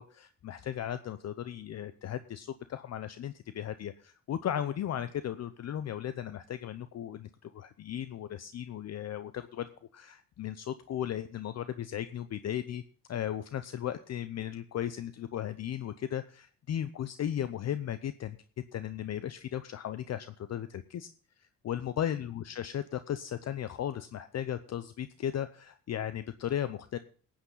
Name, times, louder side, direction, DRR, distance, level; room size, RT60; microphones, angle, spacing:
voice 1, 0.0-12.8 13.1-18.4 18.7-21.1 21.6-27.0, left 10 dB, 55° left, 12 dB, 0.7 m, -36 dB
18.5 x 8.8 x 3.8 m, 0.41 s
cardioid pair, 80°, 32 cm